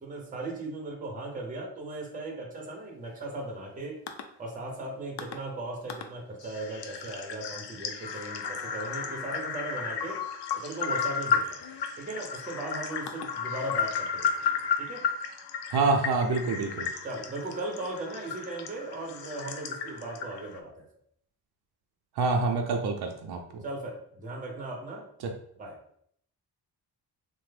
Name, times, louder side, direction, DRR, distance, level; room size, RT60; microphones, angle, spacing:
voice 1, 0.0-4.0 4.4-10.2 10.5-11.6 12.0-14.5 14.8-15.0 17.0-20.8 23.6-25.1 25.6-25.7, right 2 dB, 20° right, -1 dB, 0.6 m, -37 dB
sound 1, 4.1-4.2 5.2-5.3 5.9-6.0 6.4-20.6, left 6 dB, 90° left, 0.5 m, -33 dB
voice 2, 15.7-16.9 22.2-23.6, right 3 dB, 70° right, 3 dB, 0.5 m, -26 dB
3.2 x 2.0 x 3.2 m, 0.66 s
wide cardioid pair, 175°, 40 cm